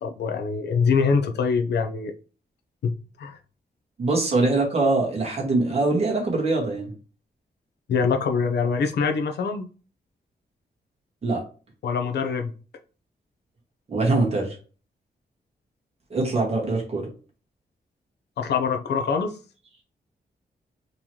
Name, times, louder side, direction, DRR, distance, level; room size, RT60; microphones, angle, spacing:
voice 1, 0.0-2.1 2.8-3.4 7.9-9.7 11.8-12.5 18.4-19.4, left 5 dB, 90° left, 6 dB, 0.5 m, -24 dB
voice 2, 4.0-6.9 11.2-11.4 13.9-14.6 16.1-17.1, right 2 dB, 40° right, -2 dB, 1.4 m, -23 dB
3.9 x 3.0 x 2.8 m, 0.37 s
wide cardioid pair, 165°, 17 cm